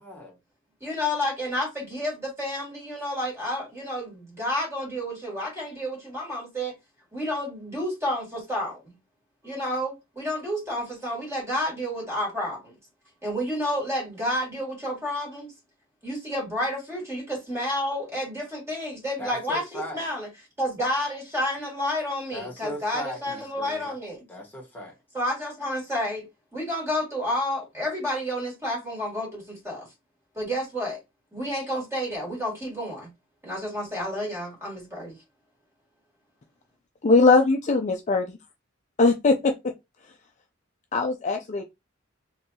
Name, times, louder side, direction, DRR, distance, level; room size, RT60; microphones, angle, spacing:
voice 1, 0.0-0.4 19.2-20.0 22.3-23.9 24.3-25.0, left 1 dB, 10° left, 1.5 m, -37 dB
voice 2, 0.8-6.7 7.1-8.9 9.4-12.7 13.2-15.5 16.0-20.3 20.6-24.2 25.1-29.9 30.3-31.0 31.3-33.1 33.4-35.2, left 1 dB, 15° right, 2.2 m, -30 dB
voice 3, 37.0-38.2 39.0-39.5 40.9-41.6, left 3 dB, 35° left, 0.4 m, -20 dB
3.8 x 2.7 x 2.8 m
head